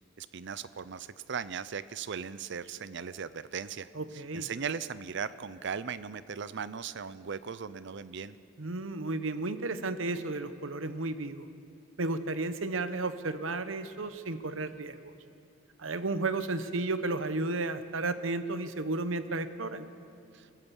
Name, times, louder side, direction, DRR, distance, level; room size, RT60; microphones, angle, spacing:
voice 1, 0.2-8.4 20.3-20.5, right 6 dB, 65° right, 15 dB, 0.6 m, -38 dB
voice 2, 3.9-4.5 8.6-11.5 12.0-15.1 15.8-19.9, right 2 dB, 80° right, 11 dB, 1.1 m, -33 dB
28.5 x 15.0 x 7.2 m, 2.5 s
head